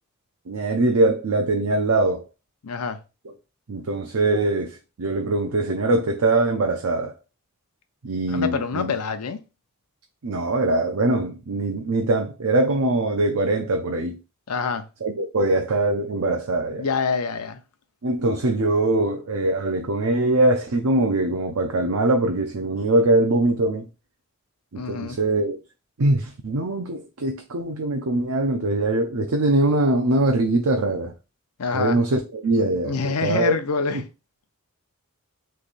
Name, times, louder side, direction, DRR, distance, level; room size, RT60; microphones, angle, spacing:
voice 1, 0.5-2.2 3.7-7.2 8.0-8.9 10.2-14.2 15.0-16.9 18.0-23.9 24.7-25.6 26.0-31.1 31.7-33.5, right 2 dB, 75° right, 0.6 m, -22 dB
voice 2, 2.6-3.0 8.3-9.4 14.5-14.9 16.8-17.6 24.7-25.2 31.6-32.0 32.8-34.1, left 5 dB, 90° left, 0.6 m, -26 dB
3.3 x 3.2 x 4.0 m
head